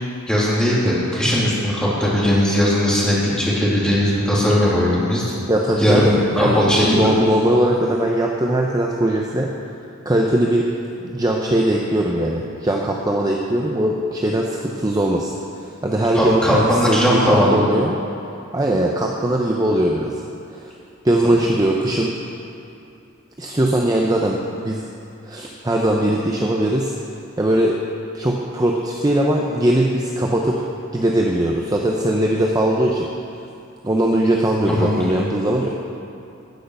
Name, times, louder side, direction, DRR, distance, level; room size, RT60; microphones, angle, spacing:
voice 1, 0.3-5.2 5.8-7.1 16.1-17.6 34.7-35.3, equal, 5° left, -8 dB, 2.9 m, -18 dB
voice 2, 5.5-9.5 10.0-10.7 11.1-17.9 18.5-20.2 20.5-20.7 21.0-22.1 23.4-24.8 25.3-26.9 27.4-27.8 28.1-30.6 30.9-33.1 33.8-35.7, right 1 dB, 15° right, -1 dB, 0.7 m, -20 dB
13.0 x 6.5 x 8.0 m, 2.8 s
head